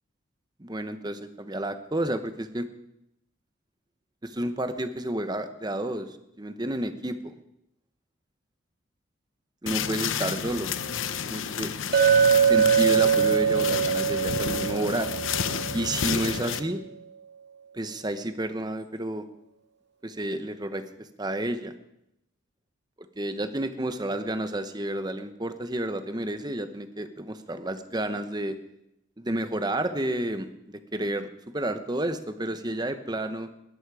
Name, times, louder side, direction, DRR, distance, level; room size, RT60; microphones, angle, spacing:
voice 1, 0.6-2.7 4.2-7.3 9.6-10.7 11.2-11.7 12.4-15.1 15.7-16.8 17.7-19.2 20.0-20.8 21.2-21.7 23.2-28.6 29.2-31.3 31.5-33.5, right 1 dB, 20° right, 10 dB, 1.0 m, -30 dB
sound 1, 9.7-16.6, left 7 dB, 70° left, 0.8 m, -31 dB
Chink clink, 11.9-16.1, right 7 dB, 55° right, 2.3 m, -22 dB
20.0 x 13.5 x 4.9 m, 0.85 s
head